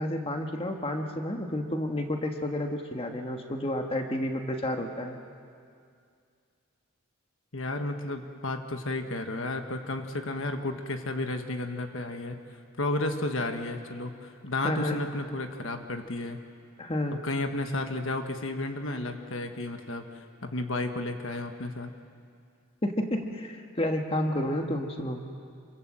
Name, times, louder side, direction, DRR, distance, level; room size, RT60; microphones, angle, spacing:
voice 1, 0.0-5.2 14.6-15.0 16.8-17.2 22.8-25.2, left 1 dB, 25° left, 3 dB, 1.6 m, -30 dB
voice 2, 7.5-16.4 17.1-21.9, left 2 dB, 60° left, 5 dB, 1.5 m, -33 dB
28.0 x 25.0 x 7.7 m, 2.3 s
head